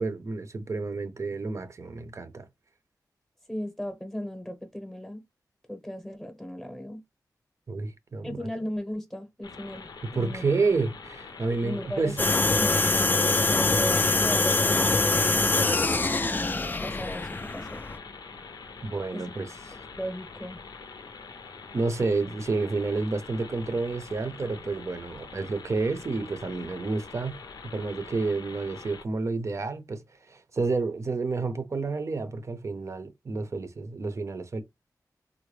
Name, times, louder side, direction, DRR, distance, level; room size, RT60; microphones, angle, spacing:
voice 1, 0.0-2.5 7.7-8.4 10.0-12.2 18.8-19.5 21.7-27.4 27.6-30.0 30.3-34.6, right 3 dB, 45° right, 0.6 m, -30 dB
voice 2, 3.5-5.2 5.7-7.0 8.2-10.4 11.6-16.5 16.8-17.8 19.1-19.2 19.7-20.6, equal, 5° left, 0.8 m, -37 dB
sound 1, 9.4-29.0, left 4 dB, 80° left, 0.6 m, -45 dB
sound 2, 12.2-18.0, left 3 dB, 25° left, 0.3 m, -24 dB
3.7 x 2.1 x 3.1 m
wide cardioid pair, 100°, 7 cm